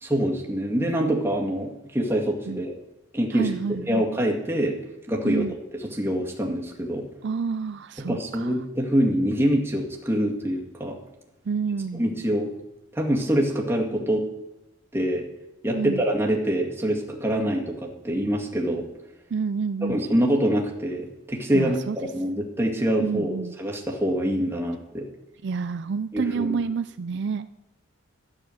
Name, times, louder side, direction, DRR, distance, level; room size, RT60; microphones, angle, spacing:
voice 1, 0.0-2.7 3.1-4.8 5.1-7.0 8.0-11.0 11.9-12.5 12.9-14.3 14.9-15.3 15.6-18.9 19.8-25.1 26.1-26.6, equal, 10° right, -1 dB, 2.0 m, -25 dB
voice 2, 3.3-4.1 5.2-5.5 7.2-8.5 11.5-12.0 15.7-16.0 19.3-20.0 21.5-22.0 23.0-23.5 25.4-27.5, right 5 dB, 60° right, 12 dB, 0.4 m, -28 dB
12.5 x 9.4 x 6.5 m, 0.98 s
head